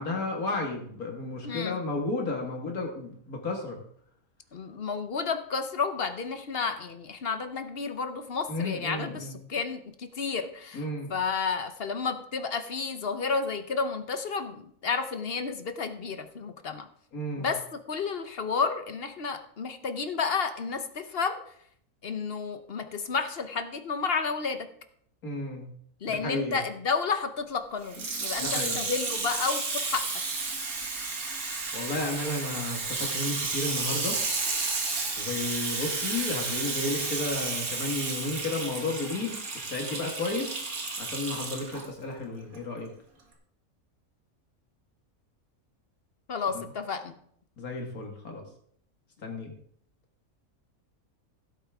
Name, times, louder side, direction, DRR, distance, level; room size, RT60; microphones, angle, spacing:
voice 1, 0.0-3.8 8.5-9.4 10.7-11.1 17.1-17.5 25.2-25.7 26.1-26.6 28.4-28.8 31.7-34.2 35.2-39.4 39.7-40.6 41.0-42.9 46.5-46.6 47.6-48.4 49.2-49.5, left 2 dB, 85° left, 1 dB, 2.3 m, -33 dB
voice 2, 1.4-1.8 4.5-10.8 11.1-16.9 17.4-21.4 22.0-24.7 26.0-30.1 46.3-47.1, left 5 dB, 50° left, 9 dB, 1.0 m, -31 dB
Water tap faucet / Sink (filling or washing), 27.8-41.8 42.5-42.6, right 3 dB, 75° right, 2.2 m, -32 dB
16.0 x 8.5 x 3.6 m, 0.65 s
omnidirectional pair, 1.5 m